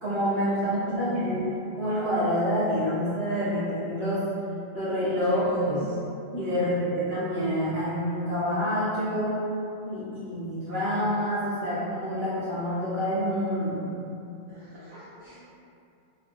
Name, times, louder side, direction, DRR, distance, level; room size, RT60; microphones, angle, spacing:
voice 1, 0.0-4.3 4.7-5.5 5.7-5.8 6.3-9.4 9.8-13.9, equal, 65° right, -13 dB, 1.0 m, -27 dB
voice 2, 0.6-1.4 5.2-5.8 6.6-7.1 14.5-15.4, right 1 dB, 45° right, -13 dB, 0.7 m, -39 dB
2.4 x 2.2 x 3.3 m, 2.7 s
omnidirectional pair, 1.1 m